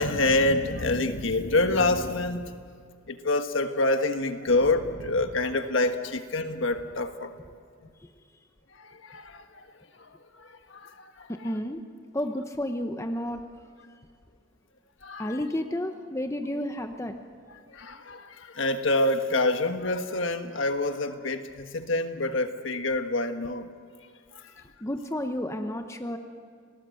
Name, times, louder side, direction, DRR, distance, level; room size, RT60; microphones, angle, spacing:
voice 1, 0.0-2.5 3.1-7.3 8.8-9.7 10.0-10.1 10.4-11.3 15.0-15.3 17.7-23.7 24.3-24.4, left 2 dB, 65° left, 7 dB, 1.5 m, -27 dB
voice 2, 11.3-11.8 12.1-13.4 15.2-17.1 24.8-26.2, left 1 dB, 15° left, 6 dB, 1.0 m, -31 dB
29.5 x 19.0 x 7.9 m, 2.1 s
head